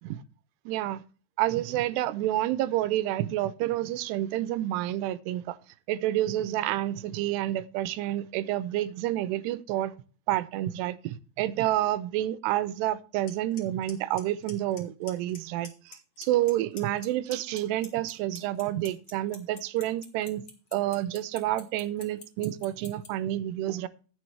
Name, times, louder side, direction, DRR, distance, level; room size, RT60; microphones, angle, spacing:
voice 1, 0.7-1.0 1.4-5.6 5.9-9.9 10.3-20.4 20.7-23.9, right 14 dB, 85° right, 2.8 m, -29 dB
Clock, 13.3-13.4 13.6-13.9 14.2-14.8 15.1-15.4 15.6-16.5 16.8-23.1, left 5 dB, 40° left, 2.0 m, -43 dB
15.5 x 7.1 x 3.2 m
omnidirectional pair, 4.7 m